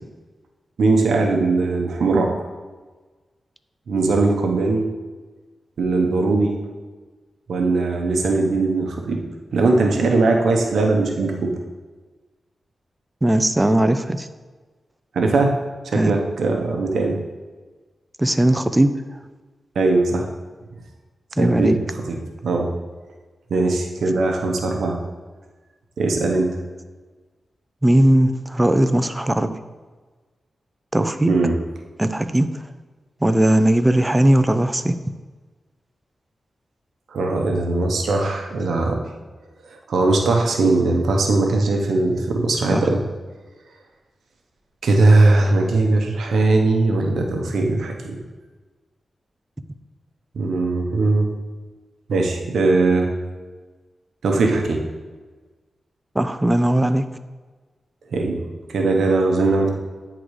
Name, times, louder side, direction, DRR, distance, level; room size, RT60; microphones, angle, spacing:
voice 1, 0.8-2.3 3.9-4.9 5.8-6.5 7.5-9.2 9.5-11.5 15.1-15.5 15.9-17.2 19.7-20.3 21.4-21.7 22.1-22.2 22.4-22.7 23.5-25.0 26.0-26.6 31.3-31.5 37.1-39.0 39.9-43.0 44.8-48.2 50.3-51.3 52.1-53.1 54.2-54.8 58.1-58.4 58.7-59.7, right 3 dB, 85° right, 2 dB, 0.8 m, -19 dB
voice 2, 13.2-14.3 15.9-16.1 18.2-18.9 21.4-21.8 27.8-29.5 30.9-31.3 32.0-32.5 33.2-35.0 42.7-42.9 56.1-57.0, right 1 dB, 15° right, 10 dB, 0.5 m, -18 dB
9.6 x 3.8 x 3.1 m, 1.3 s
cardioid pair, 55°, 0 cm